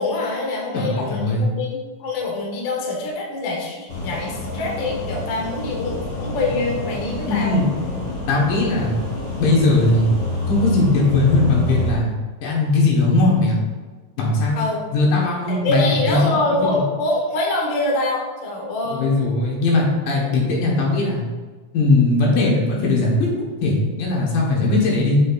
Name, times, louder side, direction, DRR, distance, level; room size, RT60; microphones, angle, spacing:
voice 1, 0.0-7.6 14.6-14.8 15.5-19.1, left 2 dB, 60° left, -1 dB, 1.3 m, -24 dB
voice 2, 0.7-1.5 7.3-7.9 8.3-9.0 9.4-10.1 10.5-12.1 12.4-13.6 14.2-14.6 14.9-16.4 16.6-16.8 18.8-21.2 21.7-23.3 23.6-25.2, left 2 dB, 85° left, -3 dB, 3.1 m, -19 dB
sound 1, 3.9-11.9, left 1 dB, 40° left, 1.6 m, -27 dB
6.9 x 6.4 x 2.5 m, 1.3 s
omnidirectional pair, 3.7 m